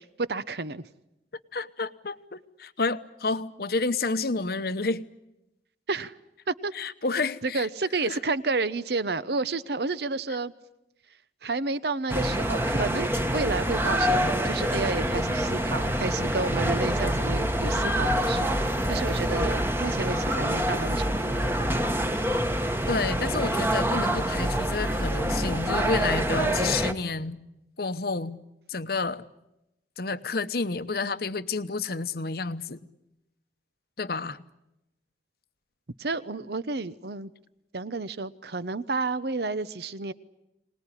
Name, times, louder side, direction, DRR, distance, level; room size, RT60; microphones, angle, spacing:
voice 1, 0.2-0.9 5.9-6.1 6.5-6.7 7.4-10.5 11.4-21.5 26.4-26.8 36.0-37.3 37.7-40.1, right 3 dB, 65° right, 16 dB, 0.9 m, -31 dB
voice 2, 1.5-5.1 6.7-7.7 8.1-8.2 22.9-27.4 27.8-28.4 28.7-29.3 30.0-32.9 34.0-34.4, left 3 dB, 55° left, 12 dB, 0.9 m, -30 dB
sound 1, 12.1-26.9, equal, 15° right, 1.2 m, -26 dB
25.0 x 19.5 x 9.9 m, 0.91 s
head